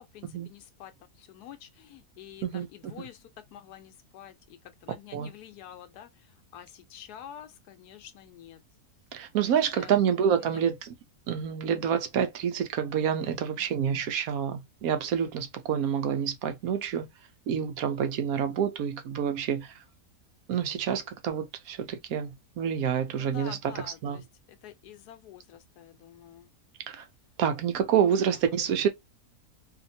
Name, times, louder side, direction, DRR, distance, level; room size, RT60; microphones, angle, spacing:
voice 1, 0.0-8.6 9.4-10.0 10.4-10.6 13.2-13.7 23.2-26.5, left 10 dB, 85° left, 1.2 m, -48 dB
voice 2, 2.4-3.0 5.1-5.3 9.1-10.9 11.3-17.1 17.5-19.8 20.5-24.2 26.9-27.1 27.4-28.9, right 8 dB, 75° right, 1.0 m, -28 dB
2.8 x 2.5 x 2.6 m
omnidirectional pair, 1.6 m